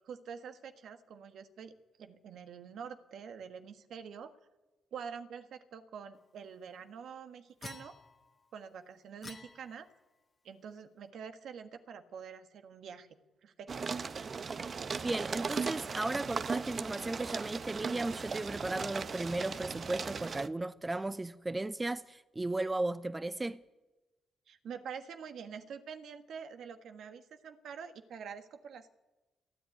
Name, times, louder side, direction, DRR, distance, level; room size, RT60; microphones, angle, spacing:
voice 1, 0.0-1.7 2.0-4.3 4.9-8.0 8.5-9.9 10.4-13.2 13.4-13.7 24.5-28.9, right 7 dB, 70° right, 1.6 m, -46 dB
sound 1, 7.6-8.4 9.2-10.2, left 3 dB, 30° left, 1.6 m, -50 dB
sound 2, 13.7-20.5, right 5 dB, 45° right, 0.8 m, -38 dB
voice 2, 15.0-23.6, right 2 dB, 20° right, 0.6 m, -35 dB
28.5 x 10.0 x 9.4 m
cardioid pair, 80°, 0 cm